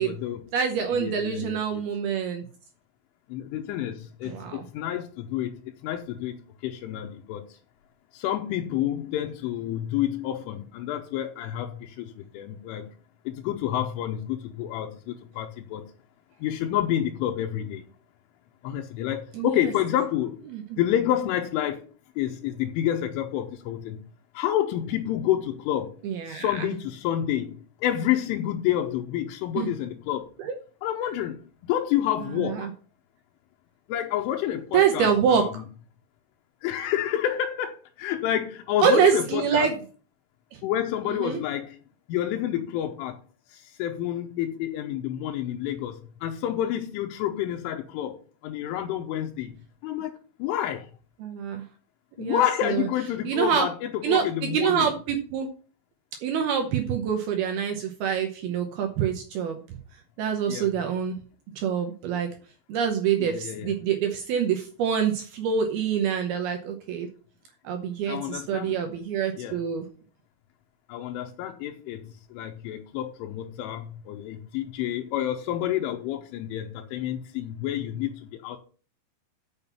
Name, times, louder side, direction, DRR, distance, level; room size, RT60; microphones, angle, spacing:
voice 1, 0.0-0.4 0.9-1.9 3.3-7.6 8.1-12.9 13.3-15.9 16.4-17.8 18.6-20.4 20.8-21.8 22.2-24.0 24.3-25.9 26.3-30.3 30.8-32.7 33.9-35.6 36.6-39.7 40.6-41.8 42.1-43.2 43.5-48.2 48.4-49.5 49.8-50.9 52.2-54.9 60.5-60.7 63.2-63.7 68.1-68.8 69.4-69.6 70.9-78.6, left 11 dB, 85° left, 3 dB, 3.3 m, -29 dB
voice 2, 0.5-2.4 4.2-4.6 19.3-19.7 20.5-20.6 26.0-26.7 29.6-29.7 30.4-30.6 32.2-32.7 34.7-35.6 38.8-39.7 40.5-40.6 41.1-41.4 51.2-51.6 52.2-52.9 53.2-53.7 54.0-55.5 56.2-59.8 60.2-61.2 61.6-62.3 62.7-67.1 67.6-69.8, right 7 dB, 75° right, 4 dB, 2.4 m, -26 dB
7.0 x 6.5 x 7.1 m, 0.39 s
omnidirectional pair, 5.6 m